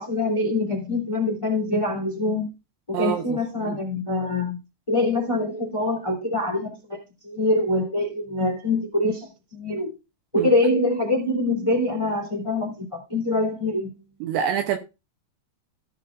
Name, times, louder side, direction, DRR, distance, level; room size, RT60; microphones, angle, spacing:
voice 1, 0.0-2.5 2.9-4.6 4.9-7.0 7.2-9.9 10.3-14.0, left 2 dB, 10° left, 2.1 m, -24 dB
voice 2, 2.9-3.8 10.4-10.5 14.2-14.8, right 9 dB, 80° right, 2.7 m, -27 dB
16.0 x 6.8 x 2.5 m
omnidirectional pair, 5.4 m